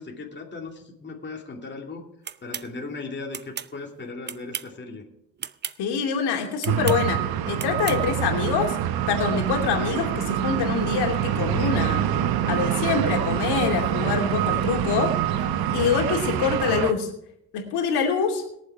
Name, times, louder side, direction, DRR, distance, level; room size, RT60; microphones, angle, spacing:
voice 1, 0.0-2.1 2.4-5.1, left 3 dB, 25° left, 0 dB, 2.7 m, -37 dB
sound 1, 2.2-2.7 3.3-3.7 4.2-4.8 5.4-5.8 6.6-7.0 7.6-8.0, right 8 dB, 25° right, 0.5 m, -34 dB
voice 2, 5.8-8.8 9.1-12.0 12.5-15.5 15.7-17.1 17.5-18.4, left 6 dB, 75° left, 2 dB, 2.9 m, -25 dB
sound 2, 6.6-16.9, right 10 dB, 65° right, 1.1 m, -25 dB
21.0 x 7.4 x 4.8 m, 0.76 s
supercardioid pair, 85°, 40 cm